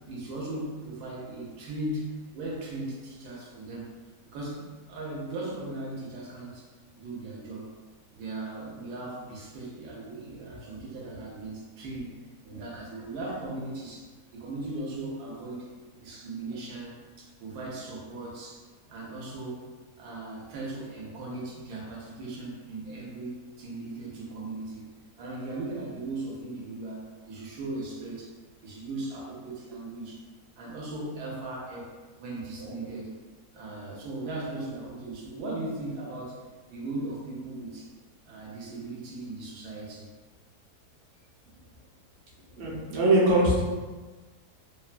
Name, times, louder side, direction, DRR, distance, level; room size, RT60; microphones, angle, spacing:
voice 1, 0.0-3.9 4.3-6.7 7.0-7.7 8.1-12.1 12.4-15.7 16.0-18.6 18.9-19.6 20.0-24.9 25.2-28.3 28.6-30.2 30.6-33.1 33.5-36.4 36.7-37.9 38.3-40.1, right 2 dB, 80° right, -4 dB, 1.1 m, -38 dB
voice 2, 42.6-43.6, right 1 dB, 55° right, -6 dB, 0.9 m, -23 dB
2.9 x 2.2 x 2.4 m, 1.3 s
omnidirectional pair, 1.7 m